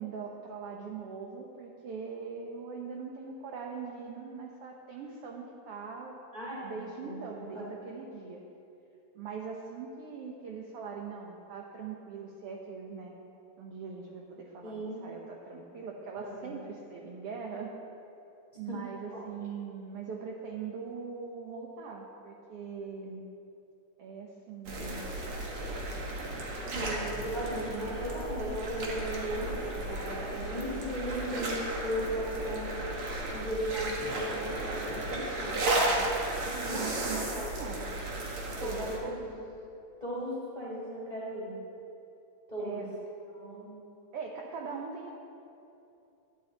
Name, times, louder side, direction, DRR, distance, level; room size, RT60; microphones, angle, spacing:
voice 1, 0.0-6.1 6.6-8.4 9.1-13.2 13.6-14.7 15.0-17.7 18.6-23.2 24.0-25.1 26.6-27.0 27.7-27.9 36.4-37.9 38.6-39.3 42.6-42.9 44.1-45.1, right 5 dB, 70° right, 0 dB, 1.4 m, -41 dB
voice 2, 6.3-7.8 14.6-15.0 16.2-16.5 18.7-18.8 19.1-19.3 26.7-32.7 33.3-36.0 36.7-36.9 37.3-37.5 38.6-39.1 40.0-41.5 42.5-42.8 43.3-43.7, equal, 20° left, -7 dB, 1.3 m, -37 dB
sound 1, 24.7-39.0, right 1 dB, 55° right, 2.0 m, -34 dB
10.5 x 10.0 x 3.9 m, 2.7 s
omnidirectional pair, 3.4 m